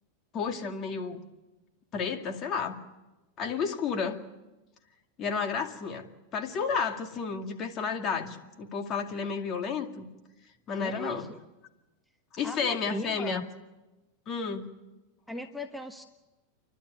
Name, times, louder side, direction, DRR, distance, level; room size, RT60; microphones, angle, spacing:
voice 1, 0.3-1.2 1.9-2.8 3.4-4.2 5.2-10.1 10.7-11.3 12.3-13.5 14.3-14.7, left 5 dB, 40° left, 5 dB, 2.2 m, -32 dB
voice 2, 10.8-11.3 12.4-13.5 15.3-16.0, left 1 dB, ahead, 7 dB, 1.1 m, -37 dB
29.5 x 12.0 x 9.2 m, 1.1 s
hypercardioid pair, 105°, 0 cm